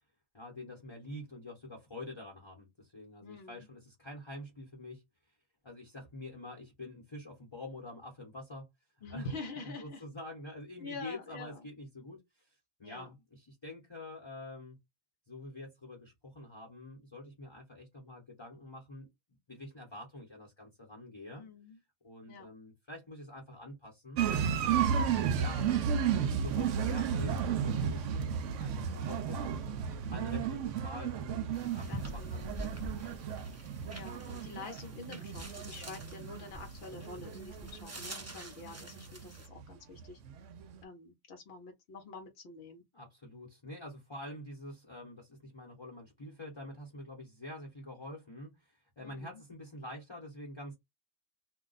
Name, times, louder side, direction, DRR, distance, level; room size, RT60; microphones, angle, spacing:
voice 1, 0.3-5.0 5.6-8.7 9.1-9.3 9.6-14.8 15.3-19.1 19.5-21.5 22.0-24.2 24.6-29.5 30.1-33.2 42.9-50.7, left 1 dB, 25° left, 0.9 m, -47 dB
voice 2, 3.2-3.7 9.0-10.0 10.8-11.6 12.8-13.1 21.4-21.8 22.3-22.5 31.9-32.6 33.9-40.2 40.8-42.8 49.0-49.4, left 3 dB, 55° left, 0.8 m, -46 dB
sound 1, 24.2-39.7 40.0-40.8, right 7 dB, 70° right, 0.9 m, -33 dB
sound 2, 31.5-39.5, right 1 dB, 20° right, 0.4 m, -46 dB
2.4 x 2.2 x 3.8 m
omnidirectional pair, 1.4 m